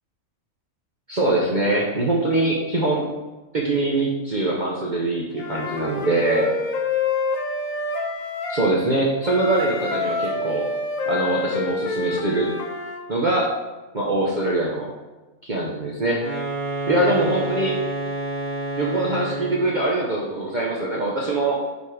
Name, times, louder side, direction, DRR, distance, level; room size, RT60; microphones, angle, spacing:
voice 1, 1.1-3.1 3.5-6.5 8.5-10.7 11.1-12.5 13.1-13.5 13.9-14.9 15.4-16.2 16.9-17.8 18.8-21.6, right 2 dB, 40° right, -4 dB, 0.8 m, -23 dB
Wind instrument woodwind instrument, 5.4-8.7 9.2-13.0, left 3 dB, 75° left, 1.2 m, -27 dB
sound 1, 16.1-19.8, right 2 dB, 20° right, 1.8 m, -29 dB
5.5 x 4.6 x 4.7 m, 1.2 s
omnidirectional pair, 1.4 m